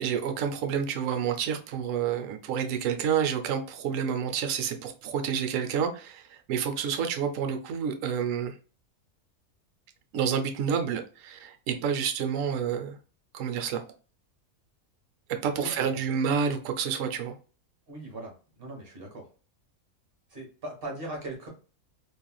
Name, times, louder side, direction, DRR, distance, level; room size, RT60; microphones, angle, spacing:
voice 1, 0.0-8.5 10.1-13.0 13.3-13.8 15.3-17.4, right 7 dB, 70° right, 0.9 m, -29 dB
voice 2, 15.6-16.4 17.9-19.3 20.3-21.5, right 1 dB, 40° right, 1.3 m, -40 dB
3.2 x 2.5 x 2.2 m
omnidirectional pair, 1.5 m